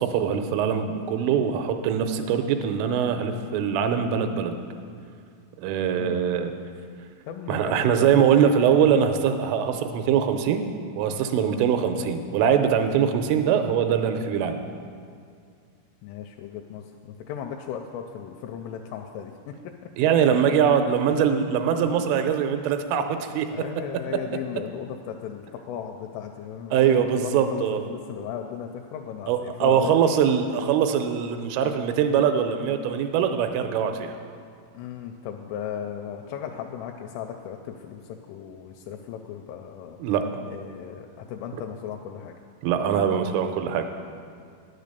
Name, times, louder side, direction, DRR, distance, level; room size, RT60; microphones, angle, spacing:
voice 1, 0.0-4.6 5.6-6.5 7.5-10.6 11.0-14.6 20.0-23.5 26.7-27.8 29.3-34.2 40.0-40.2 42.6-43.9, right 8 dB, 85° right, 7 dB, 3.1 m, -22 dB
voice 2, 6.0-6.3 7.3-9.0 11.3-11.6 12.9-13.1 16.0-19.7 20.0-20.5 23.5-30.3 34.7-40.0 40.5-42.4, left 8 dB, 85° left, 3 dB, 3.0 m, -36 dB
10.5 x 6.9 x 6.7 m, 2.2 s
omnidirectional pair, 5.7 m